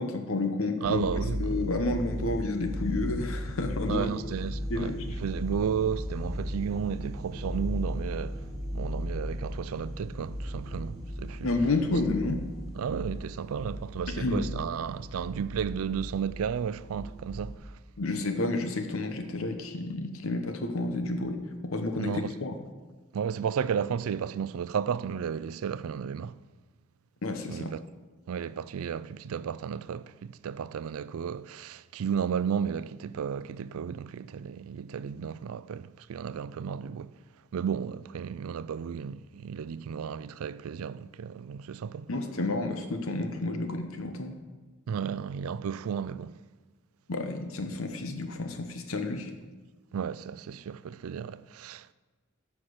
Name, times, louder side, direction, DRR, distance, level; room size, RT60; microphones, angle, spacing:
voice 1, 0.0-1.0 1.4-4.1 4.7-5.0 11.4-12.4 14.1-14.4 18.0-22.5 27.2-27.7 42.1-44.4 47.1-49.3, left 2 dB, 70° left, 0.9 m, -30 dB
sound 1, 0.8-17.6, equal, ahead, 2.5 m, -36 dB
voice 2, 0.8-1.7 3.9-8.5 8.7-11.5 12.8-17.8 22.0-22.3 23.1-26.4 27.5-27.8 28.3-37.2 37.5-42.1 44.9-46.4 49.9-51.9, right 7 dB, 75° right, 0.4 m, -33 dB
9.6 x 5.9 x 6.6 m
head